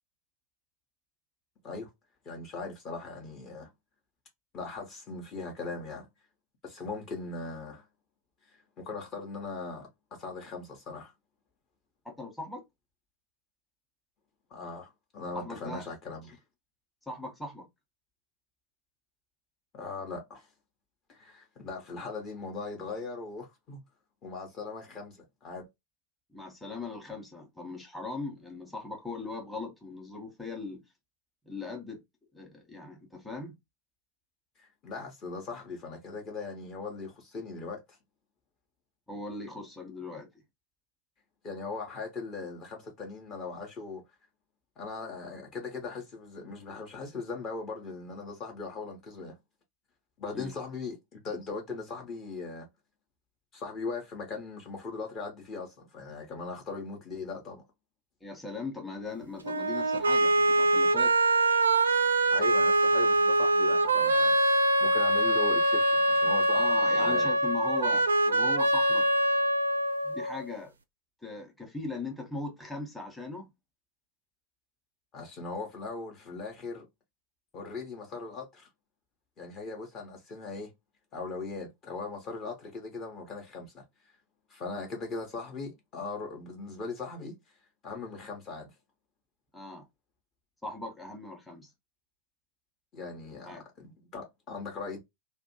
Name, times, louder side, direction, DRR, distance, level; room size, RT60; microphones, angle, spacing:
voice 1, 2.2-3.7 4.5-6.1 6.6-7.9 8.5-11.1 14.5-16.4 19.7-20.5 21.1-23.8 24.2-25.7 34.6-38.0 41.4-44.0 44.8-49.4 50.2-52.7 53.5-57.6 62.3-66.7 66.9-67.3 75.1-76.9 77.5-78.7 79.4-80.7 81.1-84.1 84.5-87.4 87.8-88.7 92.9-95.0, left 4 dB, 30° left, 0.8 m, -39 dB
voice 2, 12.0-12.6 15.3-15.8 17.1-17.7 26.3-30.8 31.4-32.0 32.3-33.5 39.1-40.3 50.3-50.5 58.2-61.2 66.5-69.1 70.0-70.7 71.2-73.5 89.5-89.8 90.6-91.7 93.4-93.6, left 3 dB, 5° left, 0.9 m, -39 dB
sound 1, 59.4-70.4, right 1 dB, 75° right, 0.4 m, -24 dB
2.6 x 2.2 x 2.7 m
figure-of-eight pair, 90°, 0 cm